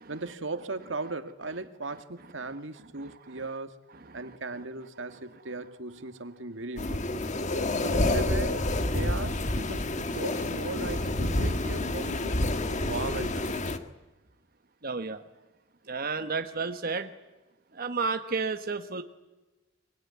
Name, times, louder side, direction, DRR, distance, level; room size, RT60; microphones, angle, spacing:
voice 1, 0.1-3.8 4.1-7.1 7.8-12.4 12.8-13.5, right 3 dB, 90° right, 9 dB, 2.0 m, -37 dB
voice 2, 3.0-3.4 3.9-4.4 14.8-15.2 15.8-17.1 17.7-19.0, right 4 dB, 50° right, 8 dB, 1.2 m, -32 dB
sound 1, 6.8-13.8, left 1 dB, 40° left, 1.6 m, -28 dB
23.5 x 23.0 x 9.6 m, 1.1 s
head